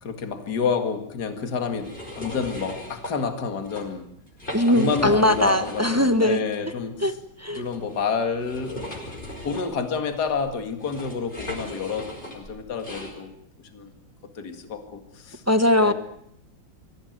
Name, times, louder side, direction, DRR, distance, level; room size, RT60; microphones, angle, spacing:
voice 1, 0.0-4.1 4.7-7.2 7.5-9.0 9.4-12.1 12.3-13.3 13.7-13.9 14.4-15.4 15.8-15.9, left 5 dB, 55° left, 7 dB, 2.5 m, -29 dB
sound 1, 1.7-3.1 3.6-3.8 4.3-6.2 6.5-6.6 7.5-13.1, left 1 dB, 25° left, 5.9 m, -38 dB
voice 2, 4.5-6.4 7.0-7.1 7.4-7.6 15.5-15.9, left 1 dB, 10° right, 10 dB, 0.7 m, -20 dB
24.5 x 15.5 x 9.4 m, 0.73 s
omnidirectional pair, 2.2 m